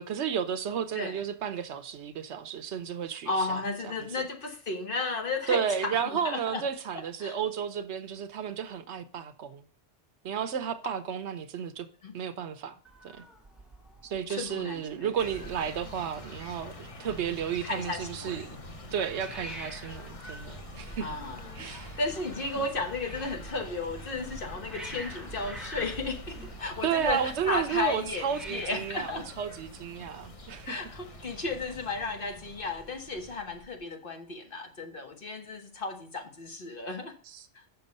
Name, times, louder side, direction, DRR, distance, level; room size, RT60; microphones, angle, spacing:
voice 1, 0.0-3.9 5.5-9.6 10.2-11.9 12.1-12.8 13.0-13.2 14.0-18.6 18.9-21.1 21.6-22.0 22.5-22.6 26.8-30.8 37.3-37.4, right 8 dB, 75° right, 1.0 m, -32 dB
voice 2, 3.2-6.6 6.9-7.4 11.6-11.7 12.0-12.2 14.3-15.3 17.6-18.4 21.0-29.3 30.6-37.1 37.5-37.7, left 3 dB, 50° left, 1.4 m, -34 dB
Hiss, 12.8-30.2, right 1 dB, ahead, 1.5 m, -49 dB
sound 1, 15.2-33.8, left 1 dB, 35° left, 0.9 m, -45 dB
7.0 x 6.1 x 5.3 m
omnidirectional pair, 1.2 m